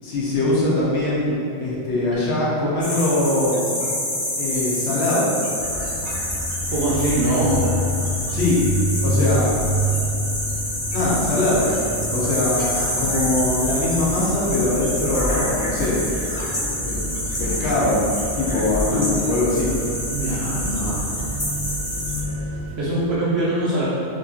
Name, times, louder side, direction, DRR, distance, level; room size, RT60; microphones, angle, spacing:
voice 1, 0.0-3.6 4.4-5.3 8.3-8.6 9.0-9.6 10.9-11.7 12.1-16.0 16.7-17.0 17.4-18.0 18.3-19.7, left 2 dB, 70° left, -6 dB, 0.9 m, -22 dB
sound 1, 2.8-22.2, left 1 dB, 30° left, 0.4 m, -28 dB
sound 2, 5.6-22.8, equal, 15° right, 0.8 m, -28 dB
voice 2, 6.7-7.6 20.1-21.0 22.8-23.8, right 1 dB, 65° right, -9 dB, 0.8 m, -22 dB
2.7 x 2.6 x 2.3 m, 2.6 s
omnidirectional pair, 1.2 m